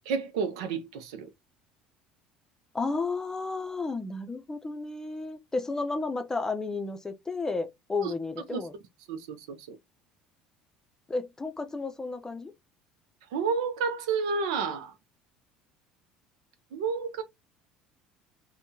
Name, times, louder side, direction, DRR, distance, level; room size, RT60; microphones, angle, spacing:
voice 1, 0.1-1.3 8.0-8.1 8.5-8.6 9.1-9.8 13.3-14.9 16.7-17.2, right 5 dB, 75° right, 0.5 m, -30 dB
voice 2, 2.7-8.7 11.1-12.5, left 3 dB, 15° left, 0.6 m, -32 dB
3.5 x 2.2 x 2.6 m
hypercardioid pair, 65°, 3 cm